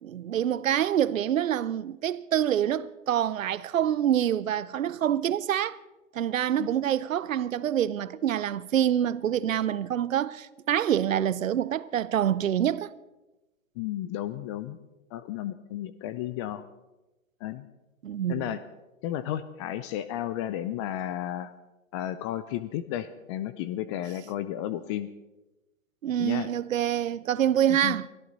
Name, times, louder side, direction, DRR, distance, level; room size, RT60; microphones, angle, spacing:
voice 1, 0.0-5.8 6.1-12.9 18.0-18.6 26.0-28.1, right 10 dB, 75° right, 0.7 m, -26 dB
voice 2, 13.8-14.8 15.1-16.6 17.4-17.7 18.3-18.6 19.0-21.5 21.9-25.1 26.2-26.5 27.7-28.0, left 12 dB, 25° left, 0.5 m, -33 dB
23.5 x 14.0 x 4.0 m
figure-of-eight pair, 115°, 40 cm